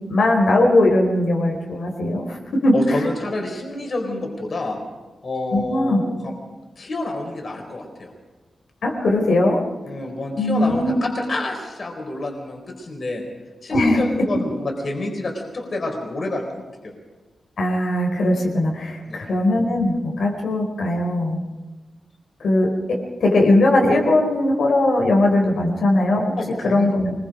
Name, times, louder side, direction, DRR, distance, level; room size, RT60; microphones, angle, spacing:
voice 1, 0.1-3.0 5.5-6.0 8.8-9.6 10.4-11.0 13.7-14.0 17.6-21.4 22.4-22.7 23.2-26.3 26.6-27.1, left 1 dB, 85° left, -1 dB, 4.4 m, -19 dB
voice 2, 2.7-4.8 5.2-6.3 6.8-8.1 9.8-13.2 13.6-16.9 19.1-19.2 26.4-26.9, left 2 dB, 45° left, 1 dB, 4.3 m, -28 dB
25.0 x 21.0 x 5.1 m, 1.2 s
wide cardioid pair, 165°, 0 cm